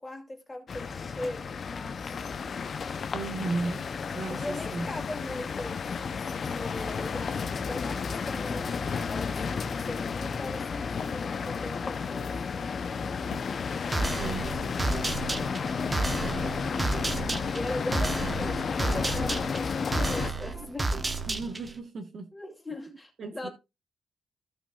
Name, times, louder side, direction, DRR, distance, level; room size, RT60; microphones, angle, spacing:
voice 1, 0.0-2.2 4.3-5.8 6.4-12.4 14.4-14.6 15.3-16.7 17.5-20.9 22.3-23.5, left 2 dB, 10° left, 2.5 m, -40 dB
sound 1, 0.7-20.3, left 5 dB, 35° left, 0.6 m, -32 dB
voice 2, 3.1-3.9 4.1-4.9 14.1-14.5 21.3-22.3 23.2-23.5, right 3 dB, 40° right, 1.2 m, -34 dB
sound 2, 11.0-11.3 12.1-12.6 13.3-13.7 14.2-16.4, left 6 dB, 75° left, 2.0 m, -46 dB
sound 3, 13.9-21.8, right 2 dB, 15° right, 0.9 m, -31 dB
16.0 x 6.0 x 2.4 m
wide cardioid pair, 175°, 0 cm